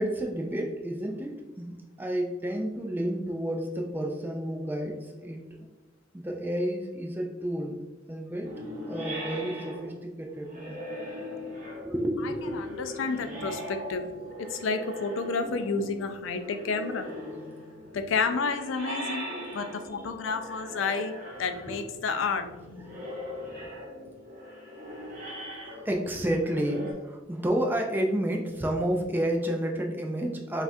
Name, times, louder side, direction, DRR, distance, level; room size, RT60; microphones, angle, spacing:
voice 1, 0.0-5.4 6.1-7.8 8.1-8.5 8.9-10.8 11.8-12.5 17.8-18.0 19.5-19.6 20.0-20.1 21.7-21.8 22.9-23.7 25.8-30.6, right 1 dB, 10° right, 1 dB, 0.3 m, -31 dB
sound 1, 8.4-26.9, equal, 40° right, 1.0 m, -40 dB
voice 2, 12.2-14.1 14.4-17.1 17.9-21.1 21.4-22.4, left 4 dB, 80° left, 8 dB, 0.4 m, -30 dB
5.4 x 2.3 x 2.6 m, 1.2 s
head